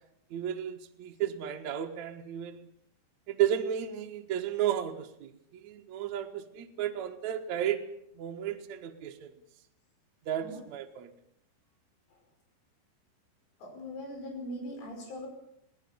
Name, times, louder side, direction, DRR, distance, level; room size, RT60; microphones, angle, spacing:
voice 1, 0.3-2.7 3.3-5.3 5.6-7.8 8.2-9.3 10.3-11.1, right 10 dB, 65° right, 4 dB, 1.9 m, -33 dB
voice 2, 13.6-15.3, equal, 80° left, 2 dB, 7.7 m, -40 dB
22.0 x 17.0 x 7.1 m, 0.73 s
omnidirectional pair, 5.5 m